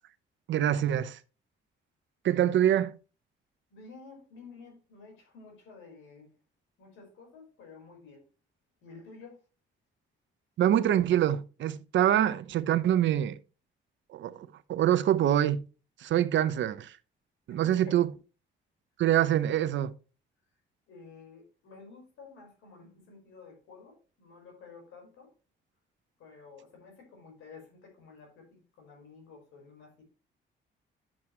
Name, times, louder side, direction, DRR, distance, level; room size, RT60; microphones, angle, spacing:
voice 1, 0.5-1.2 2.2-2.9 10.6-13.4 14.1-15.6 16.0-17.0 17.5-18.1 19.0-19.9, right 11 dB, 70° right, 0.8 m, -25 dB
voice 2, 3.7-6.3 6.8-8.3 8.8-9.4 17.5-18.0 20.9-25.3 26.2-30.0, left 4 dB, 90° left, 5.1 m, -51 dB
10.5 x 7.3 x 3.2 m
cardioid pair, 90°, 20 cm